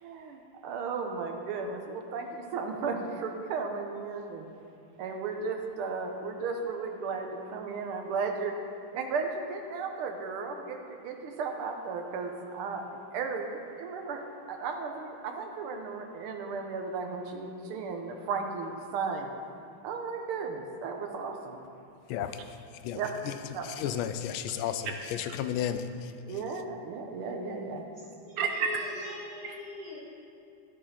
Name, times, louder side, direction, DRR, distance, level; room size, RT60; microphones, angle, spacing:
voice 1, 0.0-4.5 5.0-8.5 8.9-14.2 14.5-19.3 19.8-21.6 23.0-23.1 23.5-23.7 26.3-27.8 28.4-28.7 29.4-29.5, right 5 dB, 85° right, 4 dB, 1.7 m, -35 dB
voice 2, 22.1-22.4 22.8-26.1, left 9 dB, 80° left, 10 dB, 1.3 m, -33 dB
voice 3, 27.9-30.0, left 2 dB, 45° right, -10 dB, 2.2 m, -42 dB
15.0 x 5.2 x 4.2 m, 2.5 s
omnidirectional pair, 2.4 m